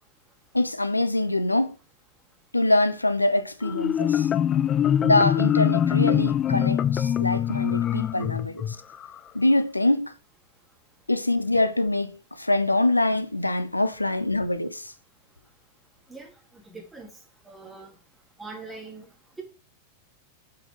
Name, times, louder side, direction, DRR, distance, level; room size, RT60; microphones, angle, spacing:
voice 1, 0.5-1.7 2.5-4.3 5.0-8.8 9.3-10.1 11.1-14.9, left 2 dB, 85° left, 0.6 m, -24 dB
Marimba xylophone, 3.6-9.2, left 10 dB, 25° left, 0.4 m, -23 dB
voice 2, 16.1-18.0 18.4-19.4, right 3 dB, 5° right, 3.2 m, -43 dB
7.7 x 6.1 x 3.8 m
figure-of-eight pair, 90°, 0 cm